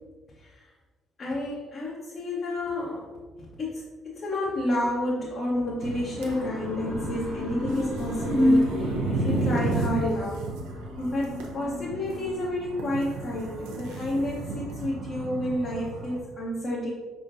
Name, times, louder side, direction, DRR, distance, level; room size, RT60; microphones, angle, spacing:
voice 1, 0.4-0.7 1.2-3.1 3.6-10.4 11.0-16.9, left 1 dB, 50° left, -7 dB, 1.1 m, -30 dB
sound 1, 5.8-16.2, right 2 dB, 75° right, 0.6 m, -33 dB
Motor vehicle (road) / Siren, 6.3-10.4, left 2 dB, 80° left, 1.3 m, -40 dB
sound 2, 6.9-12.6, left 1 dB, 25° left, 0.7 m, -29 dB
5.1 x 3.6 x 2.7 m, 1.3 s
hypercardioid pair, 50°, 0 cm